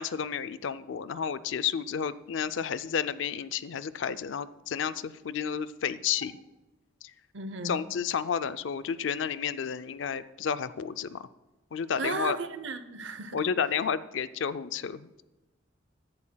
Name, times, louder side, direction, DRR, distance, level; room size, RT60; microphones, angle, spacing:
voice 1, 0.0-6.3 7.0-7.1 7.6-11.3 11.7-12.4 13.3-15.2, left 7 dB, 65° left, 15 dB, 0.4 m, -31 dB
voice 2, 7.3-7.8 12.0-13.4, right 3 dB, 65° right, 11 dB, 0.7 m, -35 dB
16.0 x 11.0 x 2.3 m, 1.1 s
head